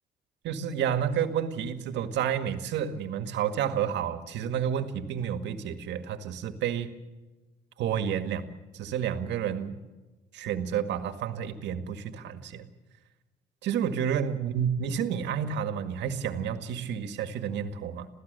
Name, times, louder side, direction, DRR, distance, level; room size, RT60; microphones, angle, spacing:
voice 1, 0.4-6.9 7.8-8.4 8.7-9.8 10.3-12.7 13.6-18.1, right 8 dB, 80° right, 9 dB, 1.9 m, -30 dB
27.5 x 16.0 x 6.7 m, 1.1 s
supercardioid pair, 75°, 18 cm